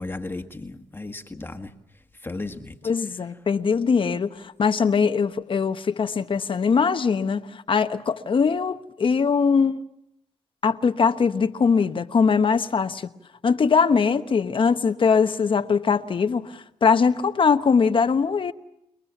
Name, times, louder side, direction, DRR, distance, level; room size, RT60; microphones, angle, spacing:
voice 1, 0.0-1.7 2.2-2.8, left 2 dB, 20° left, 1.7 m, -34 dB
voice 2, 2.8-9.8 10.6-13.1 13.4-18.5, left 5 dB, 50° left, 1.0 m, -21 dB
29.0 x 19.5 x 7.2 m
cardioid pair, 70°, 12 cm